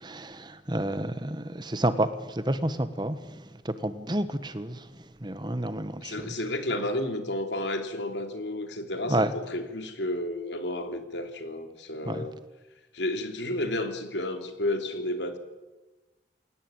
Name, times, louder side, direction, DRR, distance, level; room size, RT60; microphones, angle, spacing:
voice 1, 0.0-2.1 2.3-3.2 3.6-4.8 5.2-6.3 9.1-9.3 12.1-12.3, right 1 dB, 25° right, 12 dB, 1.4 m, -29 dB
voice 2, 6.0-12.4 12.9-15.4, left 1 dB, 85° left, 7 dB, 3.3 m, -32 dB
28.5 x 17.0 x 8.9 m, 1.1 s
head